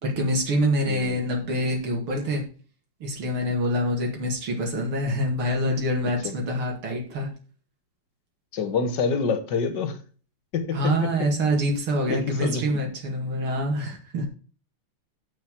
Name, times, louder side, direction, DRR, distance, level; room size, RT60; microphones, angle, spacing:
voice 1, 0.0-2.4 3.0-7.3 10.7-14.3, equal, 70° right, 3.1 m, -25 dB
voice 2, 0.9-1.2 6.2-6.4 8.5-10.0 10.5-11.3 12.1-12.6, left 5 dB, 55° left, 1.8 m, -27 dB
7.5 x 7.4 x 7.4 m
omnidirectional pair, 2.4 m